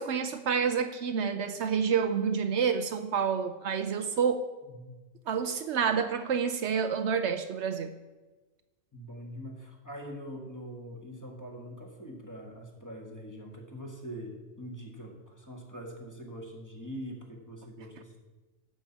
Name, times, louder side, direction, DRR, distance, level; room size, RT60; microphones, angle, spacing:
voice 1, 0.0-4.5 5.3-7.9, right 6 dB, 70° right, 9 dB, 0.9 m, -28 dB
voice 2, 4.6-4.9 8.9-18.2, equal, 15° left, 0 dB, 1.8 m, -43 dB
12.0 x 5.2 x 7.2 m, 1.2 s
omnidirectional pair, 1.3 m